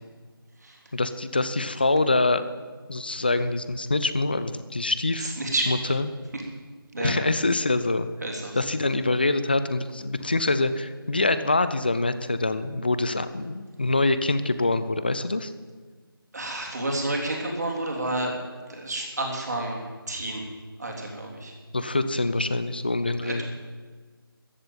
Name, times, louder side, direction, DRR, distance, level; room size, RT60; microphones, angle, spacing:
voice 1, 0.9-2.5 2.9-5.3 5.7-6.1 7.0-8.1 8.6-15.5 21.7-23.4, left 2 dB, 25° left, 12 dB, 0.5 m, -25 dB
voice 2, 5.2-5.7 6.3-6.4 6.9-7.1 8.2-8.6 16.3-18.4 18.7-20.4 20.8-21.5 23.2-23.4, right 2 dB, 45° right, 0 dB, 3.3 m, -30 dB
14.5 x 7.8 x 9.0 m, 1.4 s
figure-of-eight pair, 170°, 12 cm